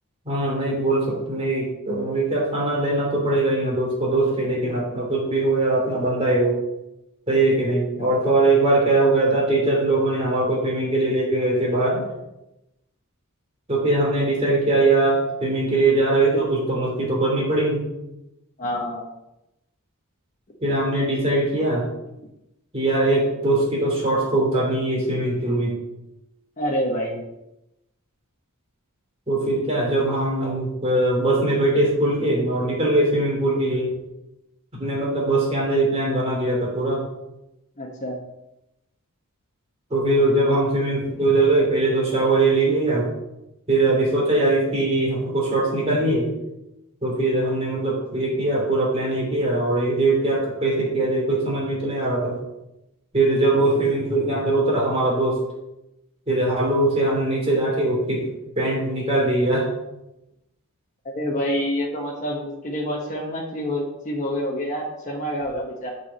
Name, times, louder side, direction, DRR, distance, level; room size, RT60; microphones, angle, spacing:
voice 1, 0.2-6.6 7.3-12.0 13.7-17.8 20.6-21.8 22.7-25.7 29.3-33.9 34.8-37.0 39.9-43.1 43.7-46.3 47.0-52.3 53.1-55.4 56.3-58.2 58.6-59.7, right 2 dB, 25° right, -3 dB, 3.0 m, -21 dB
voice 2, 18.6-19.0 26.6-27.2 37.8-38.2 61.1-65.9, equal, 35° left, -2 dB, 1.2 m, -27 dB
7.1 x 4.8 x 6.9 m, 0.92 s
head